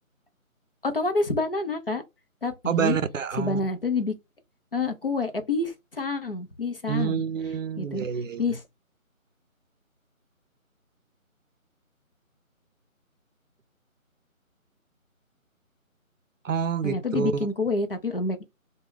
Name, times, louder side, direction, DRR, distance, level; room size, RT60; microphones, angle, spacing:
voice 1, 0.8-2.0 2.4-3.0 3.4-4.1 4.7-7.2 7.8-8.0 8.4-8.6 16.8-18.4, left 3 dB, 45° left, 0.6 m, -27 dB
voice 2, 2.7-3.6 6.9-8.4 16.4-17.5, right 7 dB, 65° right, 0.5 m, -27 dB
2.4 x 2.2 x 3.2 m
figure-of-eight pair, 165°, 42 cm